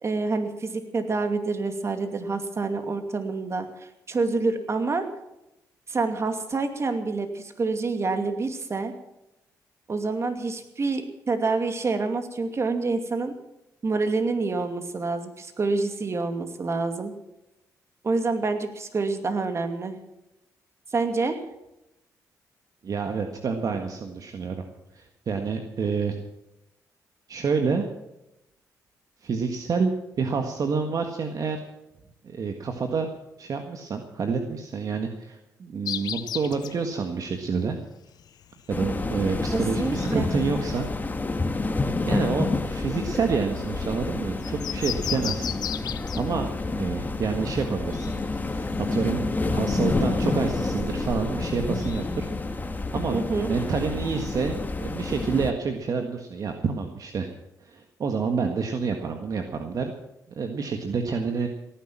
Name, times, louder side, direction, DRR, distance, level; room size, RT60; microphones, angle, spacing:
voice 1, 0.0-5.1 5.9-8.9 9.9-13.3 13.8-17.1 18.0-20.0 20.9-21.4 39.5-40.3 53.1-53.5, right 3 dB, 40° right, 7 dB, 2.5 m, -27 dB
voice 2, 22.8-24.6 24.9-26.2 27.3-27.9 29.2-29.9 30.2-31.6 32.2-33.1 33.4-37.8 38.7-40.9 42.0-45.5 45.8-48.1 48.5-52.2 52.7-57.3 57.6-59.9 60.3-61.5, right 5 dB, 60° right, 5 dB, 1.6 m, -28 dB
sound 1, 35.9-52.6, left 10 dB, 75° left, 0.9 m, -39 dB
sound 2, 38.7-55.5, left 3 dB, 25° left, 1.8 m, -29 dB
17.5 x 10.5 x 7.5 m, 0.90 s
cardioid pair, 70°, 7 cm